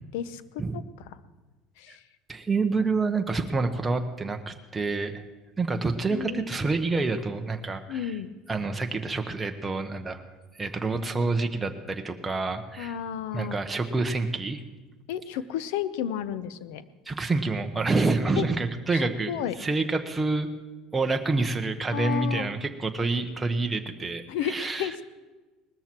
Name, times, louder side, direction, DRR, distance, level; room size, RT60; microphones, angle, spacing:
voice 1, 0.1-0.8 1.8-2.0 6.1-6.4 7.9-8.3 12.8-13.6 15.1-16.8 18.4-18.5 18.9-19.0 19.3-19.5 21.9-22.5 24.3-25.0, left 10 dB, 85° left, 15 dB, 0.7 m, -32 dB
voice 2, 2.3-5.2 5.6-8.2 8.5-10.2 10.6-13.0 13.3-14.6 17.1-19.3 19.6-20.5 20.9-24.9, right 3 dB, 10° right, 5 dB, 1.0 m, -27 dB
19.5 x 13.5 x 4.5 m, 1.3 s
cardioid pair, 150°, 0 cm